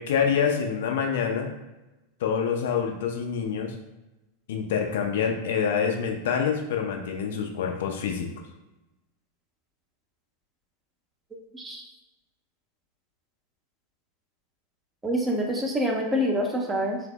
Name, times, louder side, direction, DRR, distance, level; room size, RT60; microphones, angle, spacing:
voice 1, 0.0-1.5 2.2-3.7 4.5-8.3, left 7 dB, 55° left, 2 dB, 0.4 m, -26 dB
voice 2, 15.0-17.0, equal, 10° right, 0 dB, 0.5 m, -26 dB
3.2 x 2.0 x 3.0 m, 1.0 s
figure-of-eight pair, 90°, 0 cm